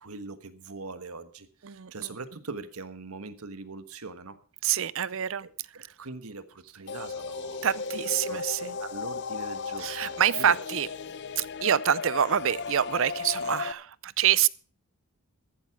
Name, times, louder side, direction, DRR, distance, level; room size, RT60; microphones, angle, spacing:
voice 1, 0.0-1.5 1.9-4.4 6.0-7.7 8.3-8.4 8.8-10.6, right 3 dB, 80° right, 1.3 m, -41 dB
voice 2, 1.6-2.2 4.6-5.5 7.6-8.8 9.8-10.9 11.4-14.5, right 9 dB, 60° right, 0.5 m, -26 dB
sound 1, 6.9-13.7, left 5 dB, 50° left, 0.6 m, -35 dB
14.5 x 11.5 x 4.7 m
head